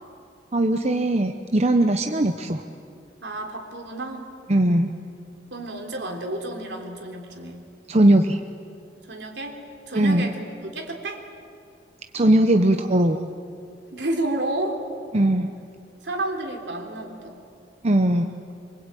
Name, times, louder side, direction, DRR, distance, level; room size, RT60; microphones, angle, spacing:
voice 1, 0.5-2.6 4.5-4.9 7.9-8.4 10.0-10.3 12.1-13.2 15.1-15.5 17.8-18.3, right 1 dB, 35° right, 6 dB, 0.9 m, -19 dB
voice 2, 3.2-4.3 5.5-7.6 9.1-9.6 9.9-10.5 10.7-11.2 13.9-14.8 16.0-17.4, right 1 dB, 70° right, 2 dB, 3.7 m, -30 dB
25.5 x 24.5 x 9.1 m, 2.5 s
head